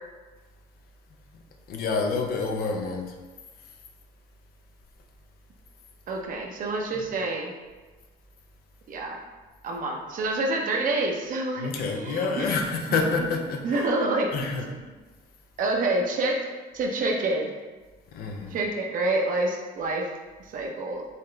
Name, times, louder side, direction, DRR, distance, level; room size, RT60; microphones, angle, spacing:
voice 1, 1.7-3.1 11.6-13.9 14.3-14.7 18.1-18.5, left 4 dB, 60° left, 2 dB, 0.6 m, -28 dB
voice 2, 6.1-7.5 8.9-9.2 9.6-12.5 12.9-13.0 13.6-14.3 15.6-16.4 16.7-17.5 18.5-20.1 20.5-21.0, right 2 dB, 55° right, 1 dB, 0.8 m, -27 dB
4.0 x 3.8 x 3.3 m, 1.3 s
cardioid pair, 110°, 17 cm